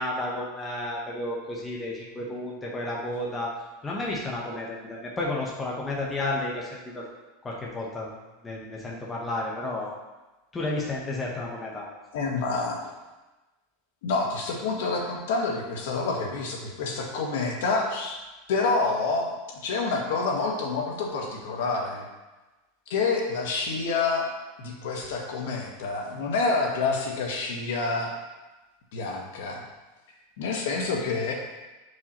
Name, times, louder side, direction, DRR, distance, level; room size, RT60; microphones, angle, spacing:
voice 1, 0.0-3.5 3.8-7.0 7.4-8.1 8.4-9.9 10.5-11.9, left 2 dB, 10° left, -3 dB, 0.8 m, -32 dB
voice 2, 12.1-12.9 14.0-18.2 18.5-19.3 19.6-22.1 22.9-24.3 24.6-28.1 28.9-29.6 30.4-31.3, left 3 dB, 70° left, 0 dB, 1.3 m, -28 dB
7.4 x 4.8 x 2.9 m, 1.1 s
supercardioid pair, 170°, 0 cm